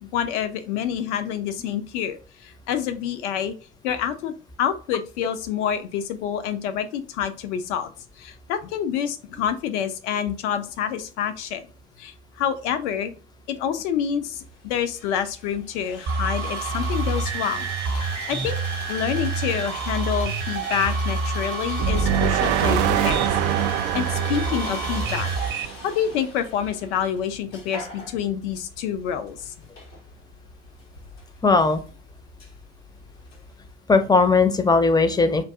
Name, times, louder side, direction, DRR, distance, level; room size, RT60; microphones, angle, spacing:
voice 1, 0.0-3.5 3.8-7.9 8.2-11.7 12.0-13.1 13.5-18.6 18.9-23.6 23.9-25.3 25.8-29.5, left 9 dB, 70° left, 10 dB, 0.6 m, -27 dB
Sawing, 14.3-33.7, left 2 dB, 90° left, 1.0 m, -41 dB
sound 1, 16.1-25.7, right 4 dB, 30° right, 0.8 m, -28 dB
sound 2, 21.8-25.9, right 9 dB, 60° right, 0.5 m, -24 dB
voice 2, 31.4-31.8 33.9-35.4, left 4 dB, 10° left, 9 dB, 0.6 m, -18 dB
3.9 x 2.6 x 3.4 m, 0.36 s
figure-of-eight pair, 60°, 36 cm